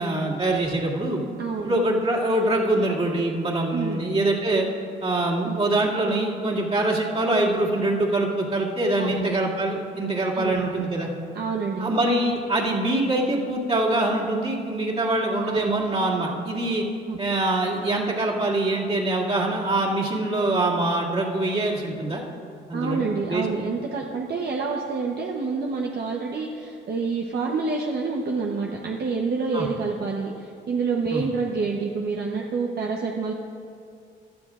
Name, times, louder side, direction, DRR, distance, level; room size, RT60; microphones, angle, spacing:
voice 1, 0.0-1.2 1.6-4.7 5.0-11.1 11.8-16.8 17.2-22.2 22.7-23.0 23.3-23.4 29.5-29.7 31.1-31.2, right 2 dB, 30° right, -4 dB, 2.3 m, -24 dB
voice 2, 1.4-1.7 3.7-4.0 5.4-5.6 9.0-9.3 10.3-10.8 11.3-11.9 15.4-15.8 17.1-17.2 22.7-33.3, right 4 dB, 55° right, -1 dB, 1.0 m, -28 dB
17.0 x 12.0 x 2.5 m, 2.4 s
cardioid pair, 90°, 20 cm